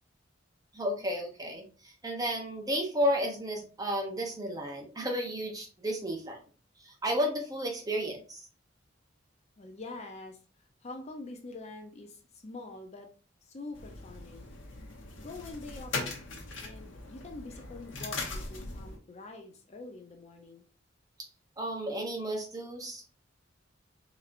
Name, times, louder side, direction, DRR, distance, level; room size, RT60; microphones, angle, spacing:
voice 1, 0.7-6.4 6.8-8.5 21.6-23.0, equal, 20° right, 1 dB, 0.8 m, -32 dB
voice 2, 9.6-13.1 13.4-14.5 15.2-16.3 16.6-20.6, left 2 dB, 35° left, 3 dB, 0.5 m, -45 dB
sound 1, 13.7-19.0, left 3 dB, 85° left, 0.9 m, -40 dB
4.1 x 2.9 x 2.5 m, 0.36 s
head